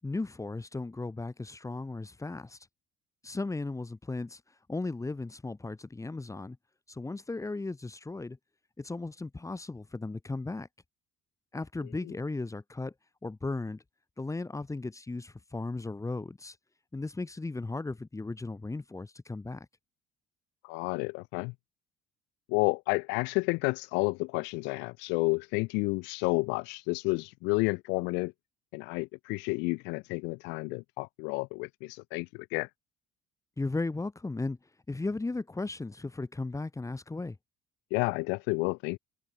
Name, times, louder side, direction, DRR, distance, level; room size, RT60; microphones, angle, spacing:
voice 1, 0.0-2.7 3.2-6.6 6.9-8.4 8.8-10.7 11.5-12.9 13.2-13.8 14.2-16.6 16.9-19.7 33.6-34.6 34.9-37.4, left 3 dB, 15° left, 7.7 m, -36 dB
voice 2, 20.6-21.5 22.5-28.3 28.7-32.7 37.9-39.0, left 29 dB, 80° left, 2.1 m, -30 dB
supercardioid pair, 80°, 18 cm